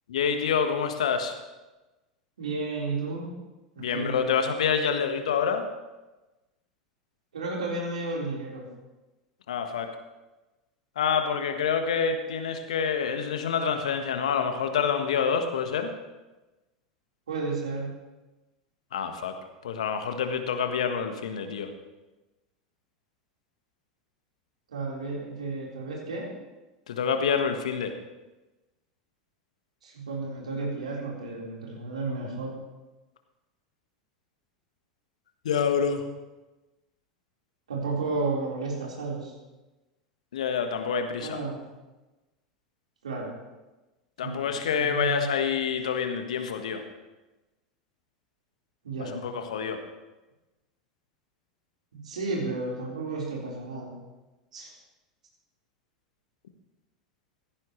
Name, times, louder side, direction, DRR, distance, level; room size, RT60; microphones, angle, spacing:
voice 1, 0.1-1.3 3.8-5.6 9.5-9.9 11.0-15.9 18.9-19.3 19.6-21.7 26.9-27.9 35.4-36.0 40.3-41.4 44.2-46.8 49.1-49.8, left 6 dB, 70° left, 7 dB, 1.5 m, -27 dB
voice 2, 2.4-3.3 3.7-4.3 7.3-8.7 17.3-17.9 24.7-26.3 29.8-32.5 37.7-39.3 41.2-41.6 43.0-43.3 44.2-45.3 48.8-49.1 51.9-53.9 54.5-54.7, right 3 dB, 75° right, -4 dB, 4.4 m, -32 dB
16.5 x 14.0 x 3.3 m, 1.1 s
figure-of-eight pair, 85°, 4 cm